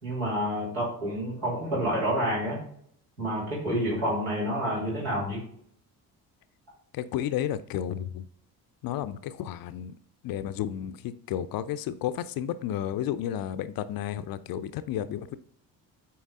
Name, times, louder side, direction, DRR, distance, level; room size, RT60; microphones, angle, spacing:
voice 1, 0.0-2.6 3.2-5.4, equal, 80° right, 3.0 m, -28 dB
voice 2, 6.9-8.2 8.8-10.0 10.2-15.4, left 11 dB, 45° left, 0.5 m, -32 dB
8.5 x 4.6 x 3.6 m
figure-of-eight pair, 40°, 50 cm